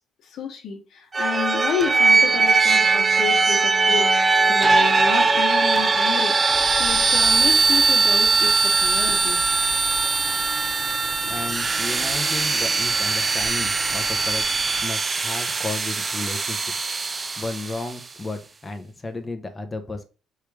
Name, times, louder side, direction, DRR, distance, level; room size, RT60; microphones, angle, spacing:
voice 1, 0.2-4.1 4.5-6.4 6.8-9.5, left 7 dB, 65° left, 1.2 m, -30 dB
sound 1, 1.1-17.9, right 4 dB, 25° right, 0.3 m, -20 dB
Rain, 6.5-14.8, right 5 dB, 65° right, 0.8 m, -37 dB
voice 2, 11.3-16.7 17.4-20.0, left 3 dB, 15° left, 0.9 m, -33 dB
4.7 x 3.3 x 3.4 m
cardioid pair, 120°, 0 cm